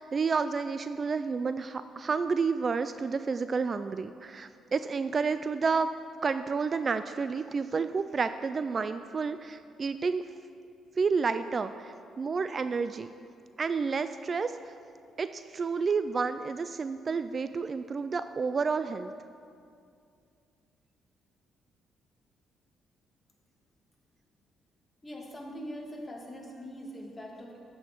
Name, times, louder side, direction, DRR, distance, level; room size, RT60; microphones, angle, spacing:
voice 1, 0.0-5.9 6.2-10.2 11.0-13.1 13.6-14.7 15.2-19.1, right 5 dB, 40° right, 11 dB, 0.3 m, -30 dB
voice 2, 25.0-27.6, equal, 15° left, -2 dB, 2.3 m, -42 dB
13.0 x 8.5 x 4.5 m, 2.4 s
cardioid pair, 90°, 0 cm